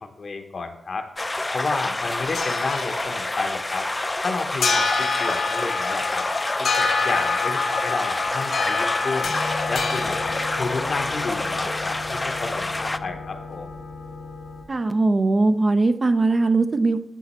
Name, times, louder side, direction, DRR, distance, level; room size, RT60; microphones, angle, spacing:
voice 1, 0.0-1.1 1.5-3.9 4.2-6.3 6.6-9.3 9.7-13.7, left 4 dB, 65° left, 6 dB, 0.8 m, -31 dB
sound 1, 1.2-13.0, left 2 dB, 25° left, 0.4 m, -28 dB
sound 2, 2.0-14.6, left 4 dB, 85° left, 1.2 m, -28 dB
voice 2, 14.7-17.0, right 3 dB, 50° right, 9 dB, 0.5 m, -20 dB
10.0 x 4.0 x 4.2 m, 0.82 s
cardioid pair, 50°, 0 cm